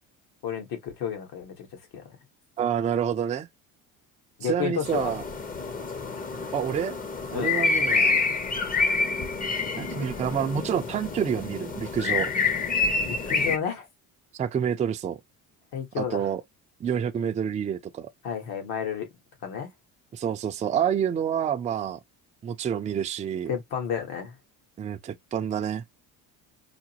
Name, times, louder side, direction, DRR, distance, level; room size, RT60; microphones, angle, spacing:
voice 1, 0.4-1.7 1.9-2.0 4.4-5.2 7.3-7.6 13.0-13.9 15.7-16.3 18.2-19.1 19.4-19.7 23.5-24.3, left 8 dB, 80° left, 1.5 m, -31 dB
voice 2, 2.6-3.5 4.4-5.2 6.5-7.0 7.3-8.2 9.8-12.3 14.4-15.2 16.0-16.4 16.8-18.1 20.1-22.0 22.4-23.5 24.8-25.8, right 8 dB, 20° right, 0.3 m, -28 dB
sound 1, 4.8-13.6, left 4 dB, 25° left, 0.6 m, -27 dB
4.8 x 2.1 x 2.8 m
cardioid pair, 115°, 37 cm